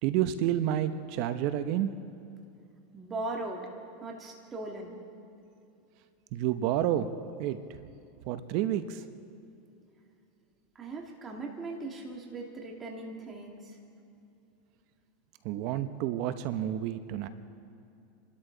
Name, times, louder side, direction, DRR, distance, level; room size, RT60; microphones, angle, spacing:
voice 1, 0.0-1.9 6.3-7.1 7.4-7.8 8.3-9.0 15.4-17.3, right 11 dB, 60° right, 11 dB, 0.8 m, -29 dB
voice 2, 2.9-3.6 4.0-5.0 10.7-13.8, right 2 dB, 25° right, 0 dB, 2.2 m, -39 dB
29.0 x 12.5 x 3.9 m, 2.7 s
supercardioid pair, 115°, 0 cm